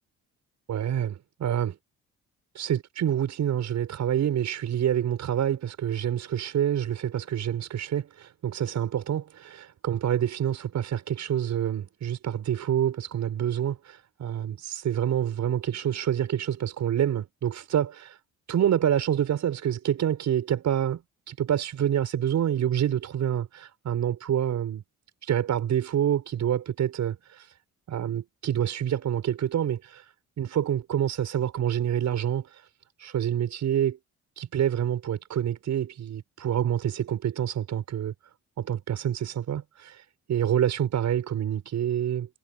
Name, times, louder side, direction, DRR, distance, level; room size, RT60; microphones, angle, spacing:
voice 1, 0.7-1.8 2.5-18.1 18.5-21.0 21.3-24.8 25.2-27.5 27.9-32.7 33.0-34.0 34.4-38.1 38.6-42.3, right 10 dB, 65° right, 6.4 m, -27 dB
cardioid pair, 90°, 30 cm